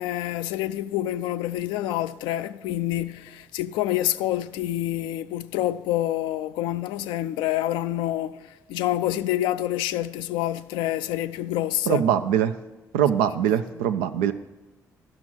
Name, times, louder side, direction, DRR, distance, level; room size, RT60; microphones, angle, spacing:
voice 1, 0.0-12.0 13.4-13.5, left 13 dB, 75° left, 0.3 m, -27 dB
voice 2, 11.9-12.5 12.9-14.3, right 9 dB, 80° right, 0.5 m, -22 dB
11.5 x 6.1 x 6.1 m
hypercardioid pair, 45°, 8 cm